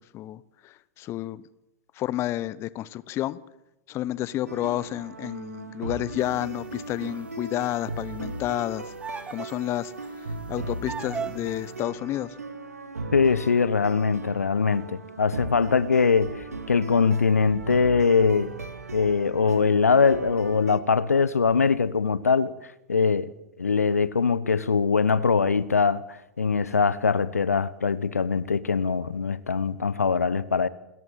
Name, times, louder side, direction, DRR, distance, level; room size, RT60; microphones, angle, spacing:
voice 1, 0.0-1.4 1.9-3.4 3.9-8.9 9.3-9.9 10.5-12.3, left 14 dB, 30° left, 0.9 m, -30 dB
sound 1, 4.5-20.8, right 3 dB, 80° right, 1.9 m, -38 dB
sound 2, 6.6-6.9 9.0-9.6 10.0-10.1 10.9-11.6, right 6 dB, 15° right, 0.8 m, -36 dB
voice 2, 13.1-18.5 18.9-22.5 22.9-23.3 23.6-30.7, left 5 dB, 75° left, 0.9 m, -22 dB
28.0 x 14.0 x 7.6 m
figure-of-eight pair, 95°, 8 cm